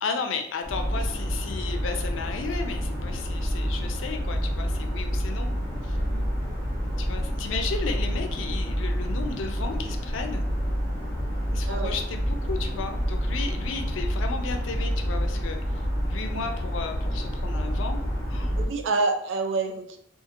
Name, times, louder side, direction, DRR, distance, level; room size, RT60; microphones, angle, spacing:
voice 1, 0.0-5.6 5.8-6.0 7.0-10.4 11.5-15.6 16.1-18.0 18.3-18.5, left 5 dB, 80° left, 5 dB, 0.4 m, -34 dB
sound 1, 0.6-18.7, equal, 15° left, 0.7 m, -28 dB
voice 2, 18.6-20.0, right 3 dB, 75° right, 6 dB, 0.4 m, -28 dB
2.8 x 2.4 x 2.4 m, 0.70 s
head